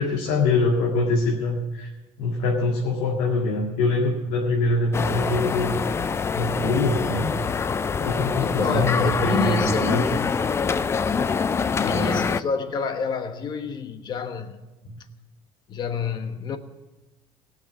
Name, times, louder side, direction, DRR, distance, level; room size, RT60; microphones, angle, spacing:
voice 1, 0.0-1.9 2.2-5.9 6.4-7.3 8.0-10.1 11.8-12.2 14.8-15.0, left 2 dB, 80° left, 2.1 m, -24 dB
sound 1, 4.9-12.4, left 5 dB, 25° left, 0.4 m, -25 dB
voice 2, 8.4-10.3 11.6-14.6 15.7-16.6, left 5 dB, 40° left, 1.2 m, -29 dB
17.0 x 6.5 x 9.2 m
cardioid pair, 125°, 11 cm